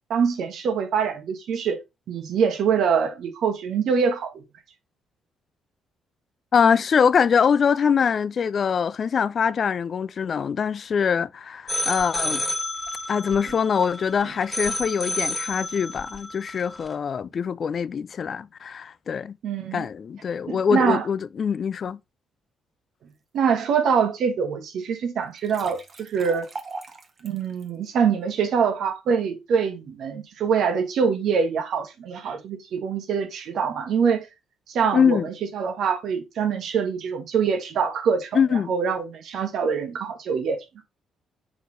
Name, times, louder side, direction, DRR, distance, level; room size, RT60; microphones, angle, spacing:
voice 1, 0.1-1.8 2.1-4.3 19.4-19.8 20.5-21.0 23.3-26.5 27.2-34.3 34.7-40.6, right 6 dB, 70° right, 1.5 m, -24 dB
voice 2, 6.5-12.4 13.1-19.4 19.7-22.0 34.9-35.3 38.3-38.7, left 6 dB, 55° left, 0.4 m, -23 dB
sound 1, 11.7-16.9, left 1 dB, 15° left, 1.6 m, -30 dB
sound 2, 25.2-27.7, right 3 dB, 45° right, 1.4 m, -40 dB
6.8 x 4.4 x 3.2 m
hypercardioid pair, 50°, 0 cm